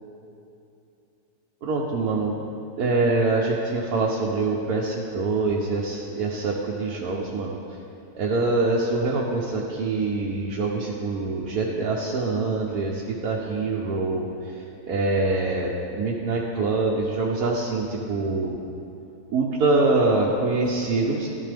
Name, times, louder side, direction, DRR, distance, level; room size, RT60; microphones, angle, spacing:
voice 1, 1.6-2.3 2.8-7.6 8.2-18.6 19.3-21.3, right 3 dB, 70° right, -3 dB, 1.3 m, -24 dB
12.5 x 11.0 x 3.4 m, 2.7 s
omnidirectional pair, 1.6 m